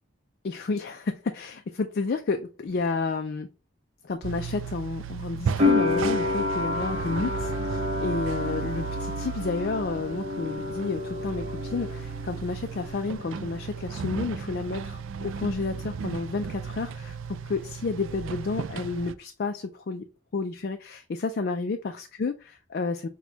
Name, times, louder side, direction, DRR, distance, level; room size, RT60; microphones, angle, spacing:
voice 1, 0.4-3.5 4.0-20.0 20.3-23.1, left 4 dB, 50° left, 0.4 m, -31 dB
sound 1, 4.2-19.1, right 6 dB, 70° right, 0.3 m, -35 dB
sound 2, 5.6-12.4 12.6-13.5, left 3 dB, 30° right, 0.7 m, -29 dB
6.1 x 2.2 x 2.7 m
head